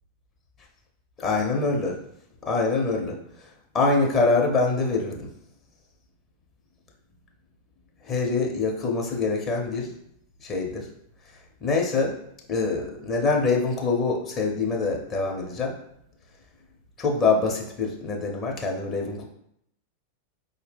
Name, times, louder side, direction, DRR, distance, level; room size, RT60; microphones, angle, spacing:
voice 1, 1.2-2.0 2.5-3.2 3.7-5.3 8.1-9.9 10.4-10.9 11.6-12.1 12.5-15.7 17.0-19.2, left 3 dB, 30° left, 0 dB, 0.7 m, -24 dB
4.5 x 2.1 x 3.4 m, 0.73 s
figure-of-eight pair, 90°, 0 cm